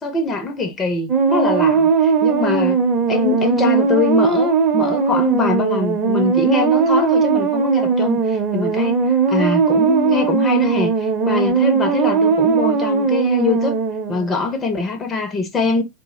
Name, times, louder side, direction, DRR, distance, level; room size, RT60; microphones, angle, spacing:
voice 1, 0.0-2.8 3.1-9.0 9.3-13.8 14.1-15.8, left 4 dB, 20° left, 0.5 m, -23 dB
sound 1, 1.1-14.4, right 5 dB, 30° right, 0.6 m, -18 dB
2.3 x 2.1 x 2.9 m
figure-of-eight pair, 90°, 0 cm